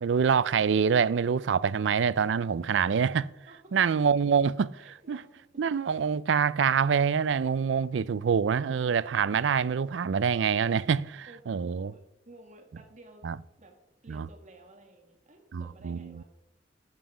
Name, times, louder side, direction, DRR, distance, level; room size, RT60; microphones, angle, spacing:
voice 1, 0.0-3.3 3.7-5.2 5.6-11.9 13.2-13.4 14.1-14.3 15.5-16.2, right 6 dB, 85° right, 0.4 m, -26 dB
voice 2, 3.5-3.9 4.8-5.3 11.3-13.2 13.6-13.7 14.0-16.2, right 2 dB, 40° right, 1.9 m, -54 dB
12.5 x 8.0 x 5.0 m
head